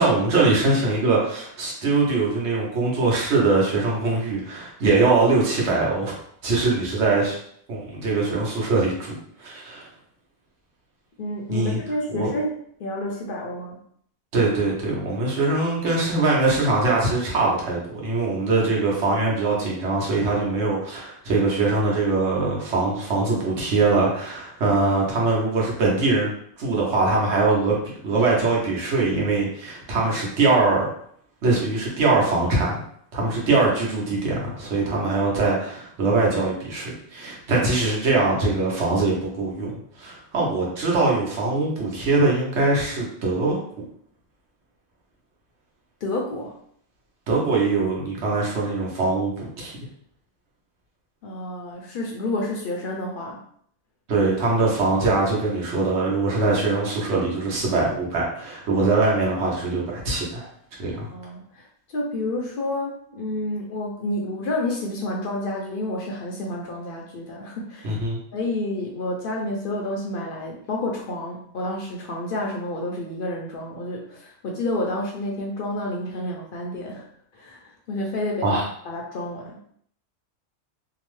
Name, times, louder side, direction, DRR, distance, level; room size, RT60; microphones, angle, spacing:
voice 1, 0.0-6.2 6.4-7.4 7.7-9.9 11.5-11.8 12.1-12.3 14.3-26.3 26.6-30.8 31.4-32.8 33.1-43.6 47.3-49.7 54.1-60.5 60.8-61.1 67.8-68.2 78.4-78.6, right 3 dB, 70° right, -3 dB, 1.1 m, -22 dB
voice 2, 11.2-12.5 12.8-13.8 46.0-46.6 51.2-53.4 61.1-68.0 68.3-77.1 77.3-79.6, left 1 dB, 60° left, -1 dB, 0.6 m, -29 dB
2.8 x 2.0 x 3.0 m, 0.65 s
omnidirectional pair, 1.2 m